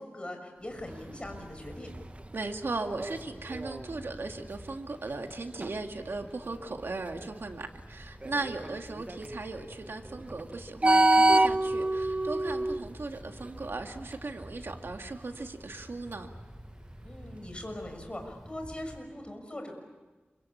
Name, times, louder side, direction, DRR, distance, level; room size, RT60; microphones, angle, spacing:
voice 1, 0.0-1.9 17.0-19.7, left 1 dB, 30° left, 4 dB, 6.2 m, -41 dB
Wind, 0.6-19.0, equal, 10° right, 3.1 m, -49 dB
sound 1, 0.9-7.4 8.2-13.8 14.1-14.4 16.1-16.2, right 2 dB, 35° right, 0.8 m, -28 dB
voice 2, 2.3-16.3, right 3 dB, 85° right, 4 dB, 2.0 m, -37 dB
27.5 x 24.0 x 8.5 m, 1.3 s
wide cardioid pair, 80°, 4 cm